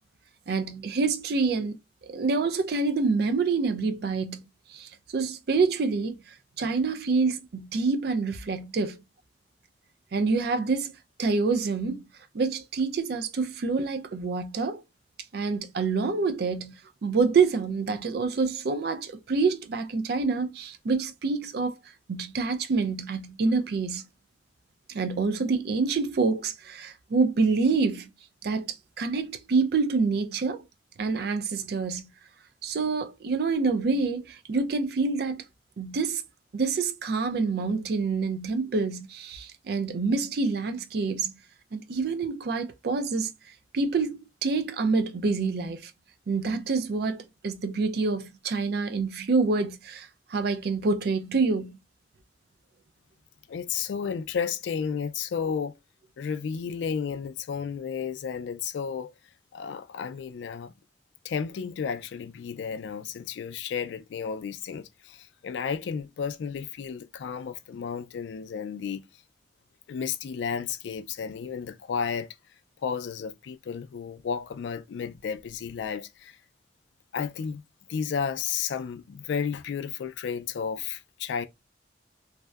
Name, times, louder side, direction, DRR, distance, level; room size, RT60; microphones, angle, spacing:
voice 1, 0.5-1.8 2.0-4.4 4.7-6.1 6.6-9.0 10.1-10.9 11.2-12.0 12.3-14.8 15.3-16.7 17.0-21.7 22.1-24.0 24.9-28.1 28.4-30.6 31.0-32.1 32.6-35.4 35.8-36.2 36.5-41.3 41.7-43.3 43.7-45.9 46.3-51.8, right 4 dB, 60° right, 0.4 m, -27 dB
voice 2, 53.5-55.8 56.2-59.1 59.5-60.7 61.2-69.0 69.9-72.3 72.8-76.4 77.1-77.6 77.9-81.5, left 6 dB, 90° left, 0.3 m, -32 dB
2.6 x 2.1 x 2.3 m
head